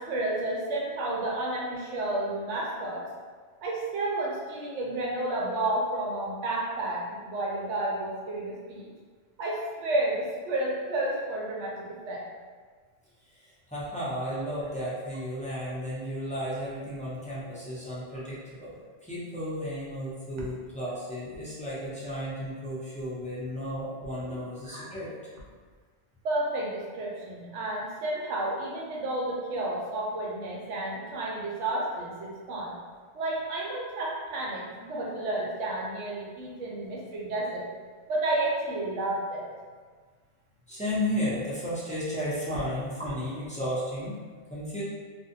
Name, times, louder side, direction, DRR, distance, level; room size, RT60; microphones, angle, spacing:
voice 1, 0.0-3.0 3.6-8.9 9.4-12.2 24.3-24.4 26.2-32.8 33.1-37.7 38.1-39.5, right 2 dB, 90° right, -3 dB, 0.9 m, -31 dB
voice 2, 13.7-18.7 19.0-25.1 40.7-44.1 44.5-44.8, equal, 10° left, -10 dB, 0.4 m, -33 dB
2.5 x 2.1 x 2.6 m, 1.5 s
omnidirectional pair, 1.2 m